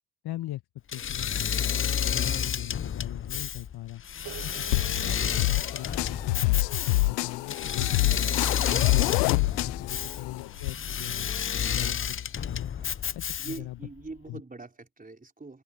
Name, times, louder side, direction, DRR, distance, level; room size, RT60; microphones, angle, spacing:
voice 1, 0.2-0.6 0.9-4.0 4.4-6.6 7.1-8.5 8.7-9.2 9.6-12.2 12.4-12.7 13.1-13.8 14.3-14.4, left 15 dB, 50° left, 1.4 m, -40 dB
Engine / Mechanisms, 0.9-13.8, left 8 dB, 25° left, 0.8 m, -30 dB
sound 1, 4.2-8.7, right 15 dB, 60° right, 2.5 m, -50 dB
sound 2, 4.7-10.7, left 23 dB, 80° left, 0.5 m, -27 dB
voice 2, 9.9-10.3 12.8-13.0 13.4-15.6, right 3 dB, 15° right, 4.4 m, -43 dB
open air
hypercardioid pair, 60°, 48 cm